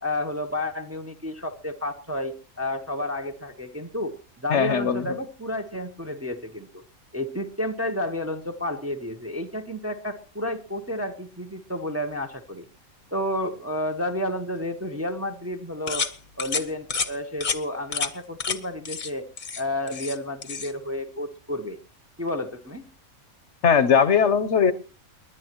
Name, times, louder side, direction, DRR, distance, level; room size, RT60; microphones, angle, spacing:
voice 1, 0.0-4.2 4.4-6.8 7.1-12.6 13.1-16.1 16.4-19.3 19.6-21.8 22.2-22.8, left 1 dB, 15° right, 4 dB, 0.8 m, -31 dB
voice 2, 4.5-5.0 23.6-24.7, left 7 dB, 60° left, 13 dB, 1.1 m, -19 dB
sound 1, 15.9-16.1 16.4-16.6 16.9-17.1 17.4-17.6 17.9-18.1 18.4-18.6 18.8-19.1 19.4-20.2 20.4-20.7, left 5 dB, 35° left, 1.0 m, -29 dB
29.5 x 10.5 x 3.0 m, 0.36 s
omnidirectional pair, 1.5 m